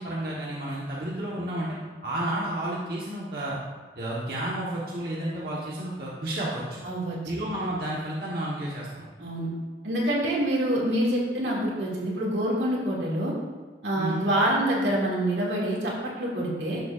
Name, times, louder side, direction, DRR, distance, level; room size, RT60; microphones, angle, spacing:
voice 1, 0.0-1.7 2.0-3.6 4.0-6.8 7.2-9.1 14.0-14.2, right 1 dB, 55° right, -6 dB, 1.3 m, -31 dB
voice 2, 6.8-7.2 9.2-9.5 9.8-13.3 13.8-16.8, right 1 dB, 85° right, -4 dB, 2.4 m, -26 dB
11.5 x 7.3 x 2.5 m, 1.3 s
head